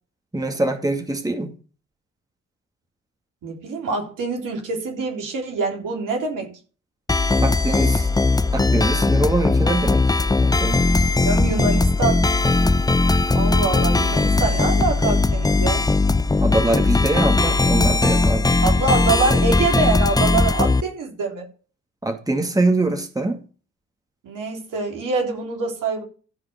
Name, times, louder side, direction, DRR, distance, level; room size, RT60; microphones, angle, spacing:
voice 1, 0.3-1.5 7.4-8.1 8.5-10.1 10.4-11.1 16.4-18.6 22.0-23.4, right 2 dB, 10° right, 2.2 m, -23 dB
voice 2, 3.4-6.5 11.2-12.3 13.3-15.8 18.6-21.5 24.2-26.0, right 4 dB, 60° right, 3.6 m, -25 dB
sound 1, 7.1-20.8, left 3 dB, 10° left, 0.7 m, -19 dB
14.0 x 5.0 x 5.2 m
hypercardioid pair, 45°, 35 cm